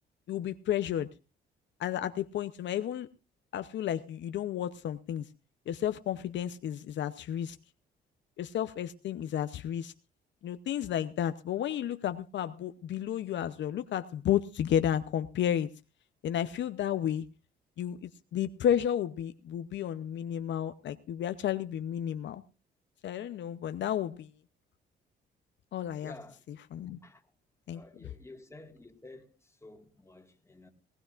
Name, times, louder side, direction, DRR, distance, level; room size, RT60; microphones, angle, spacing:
voice 1, 0.3-1.1 1.8-3.1 3.5-5.2 5.7-7.6 8.4-9.9 10.4-15.7 16.2-17.3 17.8-22.4 23.0-24.3 25.7-26.1 26.5-27.0 27.7-28.1, left 10 dB, 65° left, 0.7 m, -32 dB
voice 2, 26.0-26.4 27.0-27.2 27.7-30.7, left 2 dB, 15° left, 1.9 m, -51 dB
19.0 x 17.0 x 2.5 m
cardioid pair, 90°, 20 cm